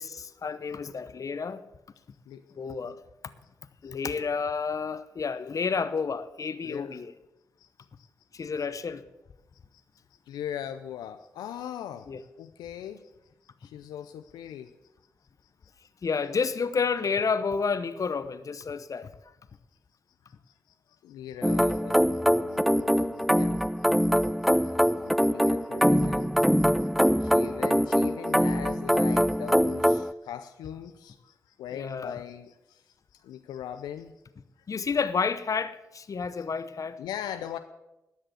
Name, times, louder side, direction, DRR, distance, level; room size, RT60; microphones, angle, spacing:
voice 1, 0.0-1.6 2.5-3.0 3.8-7.1 8.3-9.0 12.1-12.2 16.0-19.1 31.7-32.2 34.7-37.0, left 5 dB, 55° left, 0.8 m, -30 dB
voice 2, 2.3-2.6 2.8-2.9 3.8-3.9 6.6-7.0 7.6-7.7 8.0-8.1 8.4-8.5 10.3-12.1 12.4-13.1 13.6-14.7 20.3-20.5 21.0-23.7 24.4-34.1 37.0-37.6, left 10 dB, 85° left, 0.5 m, -40 dB
sound 1, 21.4-30.1, equal, ahead, 0.4 m, -23 dB
12.5 x 6.5 x 7.7 m
supercardioid pair, 40°, 7 cm